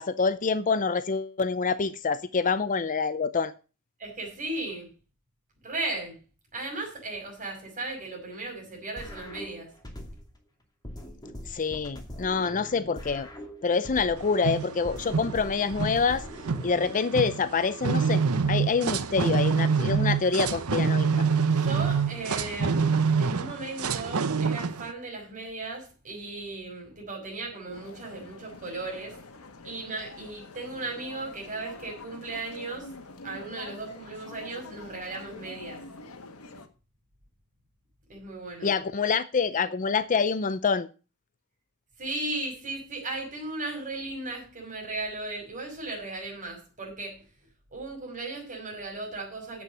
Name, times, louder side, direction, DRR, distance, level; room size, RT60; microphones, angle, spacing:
voice 1, 0.0-3.5 11.4-13.3 13.6-16.2 16.6-18.2 18.5-21.3 38.6-40.9, left 5 dB, 35° left, 0.5 m, -26 dB
voice 2, 4.0-4.9 5.6-6.2 6.5-9.7 21.5-29.2 29.6-32.9 33.2-35.8 38.1-38.7 42.0-47.2 47.7-49.6, right 2 dB, 35° right, 5.8 m, -36 dB
sound 1, 9.0-10.4 10.8-14.4 14.8-17.0, equal, 20° left, 2.4 m, -42 dB
sound 2, 14.2-24.9, right 5 dB, 70° right, 0.8 m, -26 dB
sound 3, 27.7-36.7, left 3 dB, 70° left, 1.4 m, -46 dB
9.4 x 7.8 x 6.8 m
head